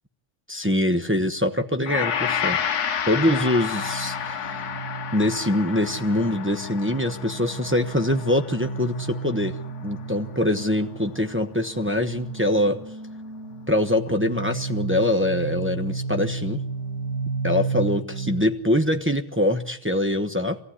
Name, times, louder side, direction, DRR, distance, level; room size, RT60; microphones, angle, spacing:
voice 1, 0.5-2.6 3.1-4.6 5.1-9.5 9.8-12.8 13.7-16.6 17.4-20.6, left 1 dB, 15° right, 3 dB, 0.4 m, -24 dB
Gong, 1.9-10.3 10.6-10.8, left 8 dB, 55° left, 1.5 m, -31 dB
sound 1, 3.7-18.5, right 4 dB, 60° right, 5.1 m, -33 dB
23.0 x 15.5 x 9.9 m, 0.73 s
omnidirectional pair, 2.2 m